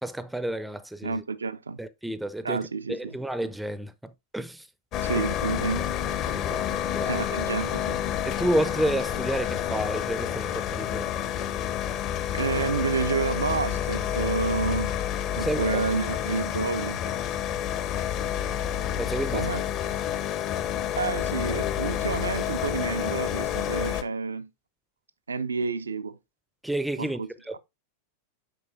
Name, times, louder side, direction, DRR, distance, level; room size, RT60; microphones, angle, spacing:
voice 1, 0.0-1.2 1.8-2.6 2.9-4.7 5.2-5.3 6.3-7.2 8.2-11.1 15.3-15.8 19.0-19.5 26.6-27.2 27.5-27.6, right 1 dB, 5° right, 0.5 m, -30 dB
voice 2, 1.0-1.8 2.4-3.1 5.0-5.8 7.0-8.0 12.3-15.0 15.4-17.0 19.3-19.6 21.0-24.5 25.3-26.2 27.0-27.3, right 4 dB, 75° right, 0.4 m, -29 dB
sound 1, 4.9-24.0, left 10 dB, 35° left, 0.7 m, -29 dB
7.7 x 5.4 x 2.6 m
figure-of-eight pair, 90°, 0 cm